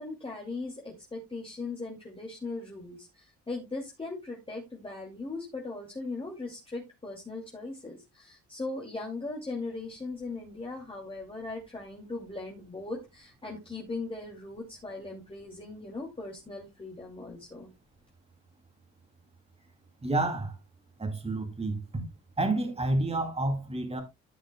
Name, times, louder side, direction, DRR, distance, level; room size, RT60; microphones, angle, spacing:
voice 1, 0.0-17.7, left 3 dB, 20° left, 2.5 m, -39 dB
voice 2, 20.0-20.6 21.0-22.0 22.4-24.0, right 2 dB, 20° right, 2.6 m, -29 dB
14.0 x 6.4 x 2.2 m
cardioid pair, 90°, 30 cm